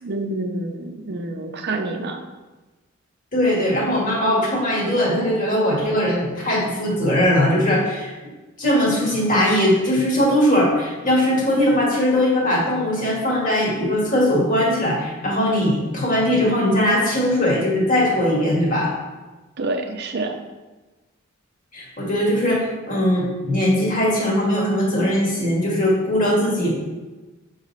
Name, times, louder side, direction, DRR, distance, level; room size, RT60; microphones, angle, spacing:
voice 1, 0.0-2.2 19.6-20.4, right 2 dB, 55° right, 5 dB, 0.6 m, -27 dB
voice 2, 3.3-8.1 8.6-18.9 21.7-26.7, left 1 dB, 40° left, -4 dB, 1.8 m, -20 dB
6.6 x 4.0 x 4.1 m, 1.2 s
head